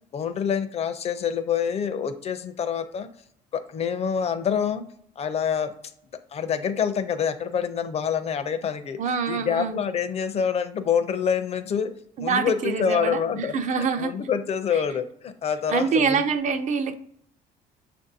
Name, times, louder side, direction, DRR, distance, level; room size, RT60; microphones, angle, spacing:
voice 1, 0.1-3.1 3.5-4.8 5.2-5.7 6.3-9.0 9.3-11.9 12.2-13.5 14.0-16.2, left 7 dB, 40° left, 10 dB, 0.5 m, -26 dB
voice 2, 9.0-9.8 12.2-14.1 15.7-16.9, right 5 dB, 45° right, 9 dB, 0.5 m, -25 dB
6.5 x 2.6 x 2.6 m, 0.68 s
cardioid pair, 110°, 17 cm